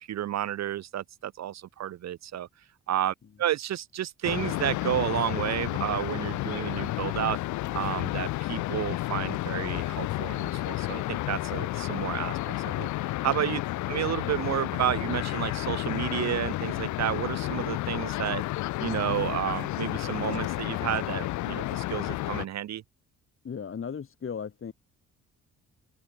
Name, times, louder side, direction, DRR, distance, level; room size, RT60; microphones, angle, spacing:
voice 1, 0.1-2.5 2.9-7.4 7.7-13.6 13.9-18.4 18.8-22.8, right 11 dB, 60° right, 1.0 m, -31 dB
sound 1, 4.2-22.5, left 17 dB, 75° left, 0.5 m, -31 dB
voice 2, 23.4-24.7, left 7 dB, 45° left, 3.6 m, -36 dB
open air
cardioid pair, 90°, 30 cm